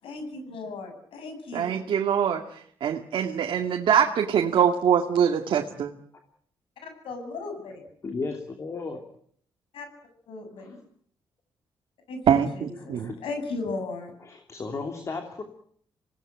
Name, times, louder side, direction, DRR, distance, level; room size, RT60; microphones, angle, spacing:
voice 1, 0.0-1.8 6.8-7.8 9.7-9.9 10.3-10.8 12.1-14.1, left 3 dB, 80° left, 6 dB, 8.0 m, -36 dB
voice 2, 1.5-5.9 12.3-13.1, right 8 dB, 65° right, 3 dB, 2.2 m, -24 dB
voice 3, 8.0-9.1 10.6-10.7 12.9-13.2 14.2-15.4, left 4 dB, 30° left, 5 dB, 3.0 m, -34 dB
27.0 x 18.5 x 9.3 m, 0.63 s
wide cardioid pair, 160°, 9 cm